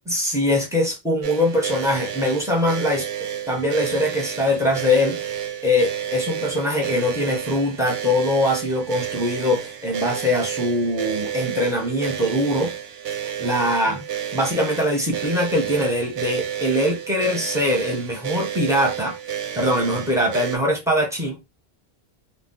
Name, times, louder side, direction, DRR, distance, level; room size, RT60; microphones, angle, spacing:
voice 1, 0.1-3.1 3.5-5.4 5.6-12.7 13.4-14.0 14.3-19.2 19.5-21.4, left 1 dB, 5° right, 0.7 m, -22 dB
sound 1, 1.2-20.6, right 9 dB, 70° right, 0.8 m, -31 dB
2.3 x 2.2 x 3.7 m
omnidirectional pair, 1.1 m